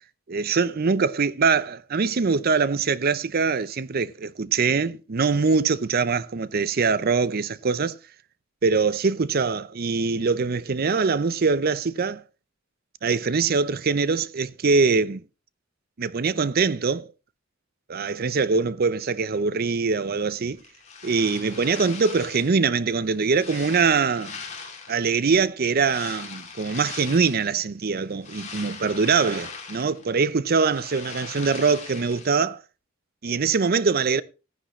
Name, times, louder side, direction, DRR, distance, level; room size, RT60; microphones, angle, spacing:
voice 1, 0.3-8.0 8.6-12.2 13.0-15.2 16.0-17.1 17.9-20.6 21.0-24.4 24.9-32.6 33.2-34.2, right 4 dB, 50° right, 0.6 m, -23 dB
sound 1, 20.6-22.6 23.0-25.1 25.7-27.6 28.0-30.2 30.5-32.4, left 5 dB, 35° left, 2.6 m, -40 dB
14.5 x 10.0 x 3.1 m
head